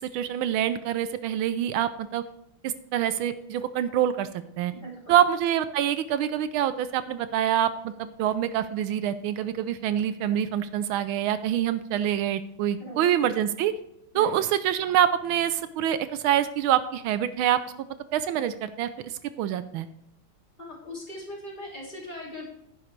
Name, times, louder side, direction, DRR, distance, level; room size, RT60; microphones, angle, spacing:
voice 1, 0.1-2.2 2.6-4.7 5.1-13.7 14.1-17.6 18.1-19.9, right 10 dB, 80° right, 13 dB, 1.4 m, -26 dB
voice 2, 4.7-5.1 12.8-13.0 14.1-14.4 20.6-22.4, left 1 dB, 20° left, -3 dB, 3.2 m, -40 dB
10.5 x 9.6 x 3.2 m, 0.81 s
omnidirectional pair, 2.3 m